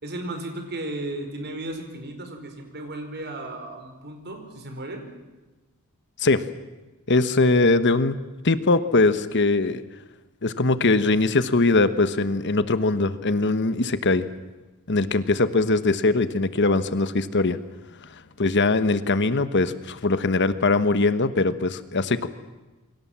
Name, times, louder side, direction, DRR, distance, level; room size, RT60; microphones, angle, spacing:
voice 1, 0.0-5.1, right 1 dB, 50° right, 5 dB, 5.2 m, -35 dB
voice 2, 7.1-8.2 8.4-9.8 10.4-14.3 14.9-17.6 18.4-22.3, left 3 dB, 55° left, 12 dB, 1.2 m, -21 dB
28.0 x 24.0 x 7.5 m, 1.2 s
head